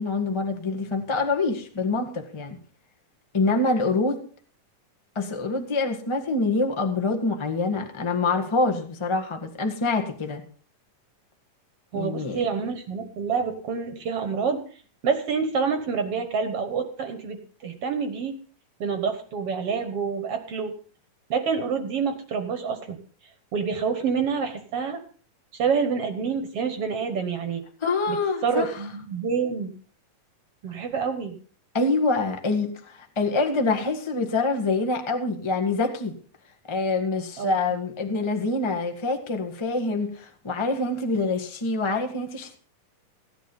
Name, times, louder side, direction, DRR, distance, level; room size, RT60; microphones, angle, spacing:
voice 1, 0.0-2.6 3.3-4.2 5.1-10.4 11.9-12.4 27.8-28.8 31.7-36.2 36.7-42.6, left 3 dB, 25° left, 0.6 m, -25 dB
voice 2, 11.9-14.6 15.0-18.4 18.8-20.7 21.3-23.0 23.5-25.0 25.5-27.6 28.1-28.2 28.4-29.7 30.6-31.4 37.4-37.8, right 5 dB, 55° right, 1.8 m, -27 dB
16.5 x 10.0 x 5.4 m
omnidirectional pair, 3.7 m